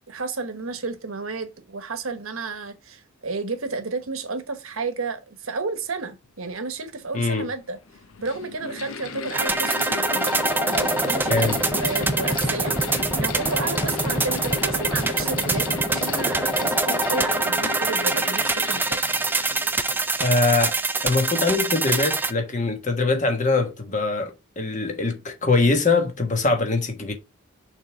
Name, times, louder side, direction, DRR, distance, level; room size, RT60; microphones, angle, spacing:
voice 1, 0.1-7.8 8.2-19.0, right 3 dB, 80° right, 1.1 m, -32 dB
Mechanical fan, 6.9-7.0 7.9-20.5, left 4 dB, 80° left, 0.8 m, -34 dB
voice 2, 7.1-7.5 11.3-11.6 20.2-20.8 21.0-27.1, left 3 dB, 35° left, 1.3 m, -22 dB
sound 1, 9.3-22.3, right 3 dB, 10° right, 0.4 m, -24 dB
6.4 x 3.5 x 5.1 m
head